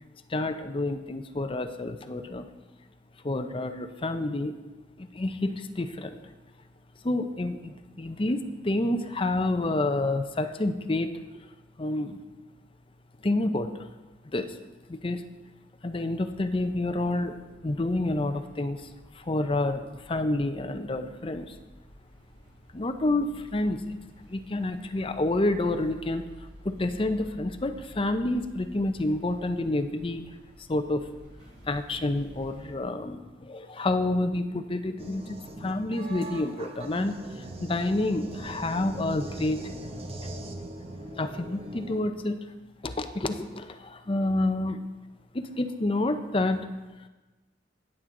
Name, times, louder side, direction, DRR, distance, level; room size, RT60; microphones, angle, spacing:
voice 1, 0.3-2.5 3.2-4.6 5.0-6.2 7.0-11.1 11.8-12.2 13.2-13.9 14.3-14.6 14.9-15.2 15.8-17.3 17.6-18.9 19.1-21.5 22.7-24.0 24.3-26.2 26.6-30.2 30.7-31.1 31.7-39.7 41.2-42.4 42.8-44.9 45.3-46.7, left 2 dB, 30° left, 8 dB, 0.6 m, -29 dB
sound 1, 16.2-32.7, equal, 90° right, 2.8 m, -52 dB
sound 2, 35.0-42.0, right 1 dB, 30° right, 0.9 m, -40 dB
17.0 x 7.5 x 3.8 m, 1.2 s
head